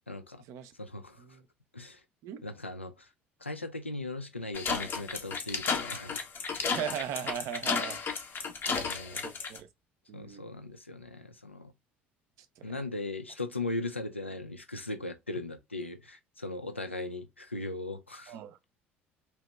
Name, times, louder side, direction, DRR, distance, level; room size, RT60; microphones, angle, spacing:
voice 1, 0.1-0.4 0.8-1.4 1.7-2.0 2.4-3.1 3.4-6.2 8.7-9.2 10.1-11.7 12.6-18.3, left 2 dB, 90° left, 0.4 m, -38 dB
sound 1, 4.5-9.6, left 5 dB, 35° left, 0.7 m, -33 dB
voice 2, 6.7-8.0 8.6-9.7 10.1-10.4 12.4-12.8 18.3-18.6, right 10 dB, 55° right, 0.5 m, -39 dB
2.9 x 2.9 x 3.2 m
figure-of-eight pair, 60°, 6 cm